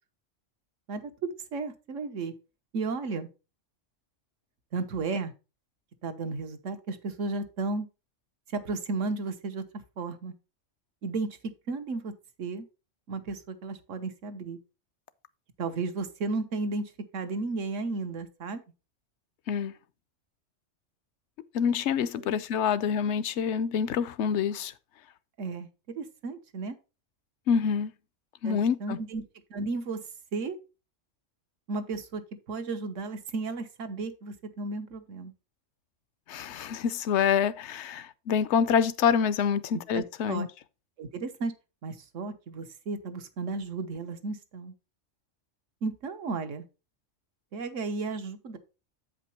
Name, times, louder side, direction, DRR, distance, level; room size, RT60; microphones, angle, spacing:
voice 1, 0.9-2.3 2.7-3.3 4.7-5.3 6.0-7.9 8.5-10.3 11.0-11.4 11.7-12.1 12.4-12.6 13.1-14.6 15.6-18.6 22.1-22.3 25.4-25.7 25.9-26.8 28.4-29.2 29.5-30.0 30.3-30.6 31.7-32.2 32.5-35.3 39.7-40.5 41.0-41.5 41.8-44.7 45.8-46.7 47.5-48.6, right 3 dB, 80° right, 1.4 m, -34 dB
voice 2, 21.5-24.7 27.5-27.9 28.4-29.0 36.3-40.5, left 7 dB, 70° left, 0.9 m, -26 dB
8.3 x 5.2 x 4.3 m
omnidirectional pair, 1.3 m